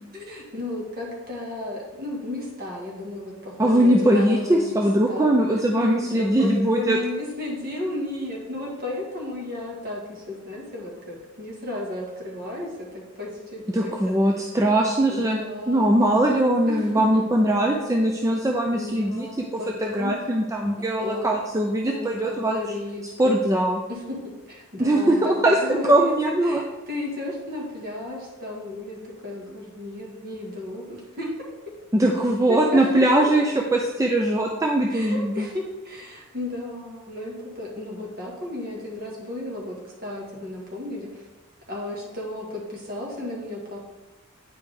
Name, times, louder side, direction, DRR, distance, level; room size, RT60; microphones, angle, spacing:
voice 1, 0.1-5.3 5.8-14.1 15.1-17.2 18.7-20.2 21.0-21.4 21.8-23.4 23.9-31.5 32.5-33.3 34.9-41.3 41.7-43.8, left 2 dB, 45° right, -3 dB, 1.8 m, -34 dB
voice 2, 3.6-7.0 13.7-15.4 15.7-19.3 19.8-22.6 23.2-23.8 24.8-26.6 31.9-35.5, right 1 dB, 15° right, 1 dB, 0.4 m, -21 dB
9.1 x 4.9 x 3.5 m, 1.1 s
head